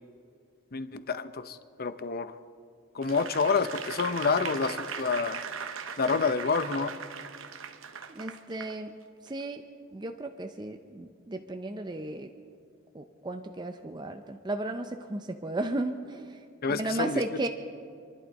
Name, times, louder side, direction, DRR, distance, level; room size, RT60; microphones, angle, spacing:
voice 1, 0.7-2.3 2.9-5.4 6.0-6.9 16.6-17.2, left 4 dB, 50° left, 11 dB, 0.7 m, -28 dB
Applause / Crowd, 3.0-8.7 9.3-9.4, right 7 dB, 75° right, 0.8 m, -39 dB
voice 2, 8.1-9.0 9.2-9.6 9.9-12.3 12.9-16.4 16.7-17.5, right 2 dB, 20° right, 6 dB, 0.6 m, -34 dB
28.0 x 11.5 x 4.1 m, 2.4 s
head